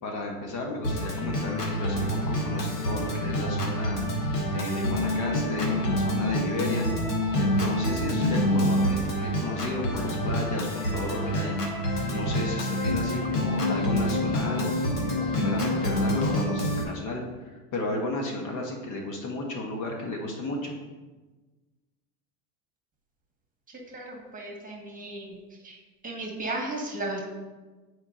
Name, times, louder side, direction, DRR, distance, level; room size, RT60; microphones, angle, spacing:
voice 1, 0.0-4.0 4.5-14.7 15.0-20.8, left 2 dB, 40° left, 1 dB, 1.1 m, -34 dB
Organ, 0.8-16.8, left 1 dB, 90° left, 1.3 m, -27 dB
voice 2, 23.9-25.4 25.6-25.8 26.0-27.2, right 2 dB, 20° right, 0 dB, 1.5 m, -35 dB
9.5 x 4.6 x 2.5 m, 1.2 s
hypercardioid pair, 105°, 46 cm